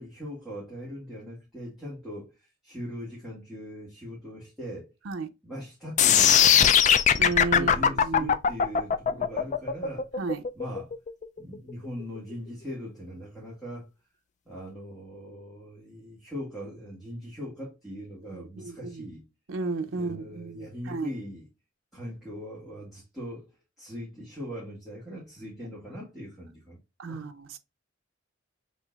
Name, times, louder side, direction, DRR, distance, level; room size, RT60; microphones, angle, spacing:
voice 1, 0.0-4.9 5.4-6.8 7.5-10.1 10.5-10.9 11.4-13.9 14.5-19.2 19.9-21.5 21.9-23.5 23.8-26.8 27.1-27.3, equal, ahead, 1.8 m, -40 dB
sound 1, 6.0-12.0, left 8 dB, 35° left, 0.3 m, -20 dB
voice 2, 7.2-8.3 10.2-10.4 18.3-18.8 19.5-21.1 27.0-27.6, right 3 dB, 75° right, 0.6 m, -33 dB
6.4 x 3.3 x 2.3 m
head